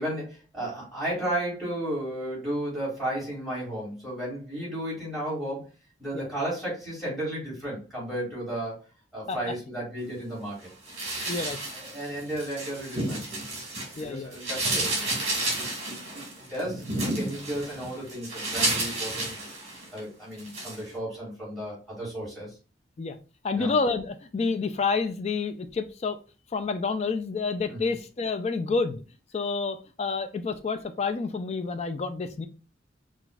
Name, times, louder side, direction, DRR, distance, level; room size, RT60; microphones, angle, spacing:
voice 1, 0.0-5.6 6.0-8.8 9.1-10.7 11.7-13.3 13.7-19.4 19.9-22.6 23.6-23.7 27.7-27.9, right 1 dB, ahead, -7 dB, 2.1 m, -34 dB
sound 1, 10.9-14.0 14.3-20.0 20.4-20.8, right 2 dB, 35° right, 1.9 m, -31 dB
voice 2, 11.3-11.6 14.0-14.3 23.0-23.2 23.4-26.2 26.5-29.0 29.3-32.5, left 4 dB, 35° left, 10 dB, 0.3 m, -29 dB
5.8 x 2.5 x 2.3 m, 0.33 s
head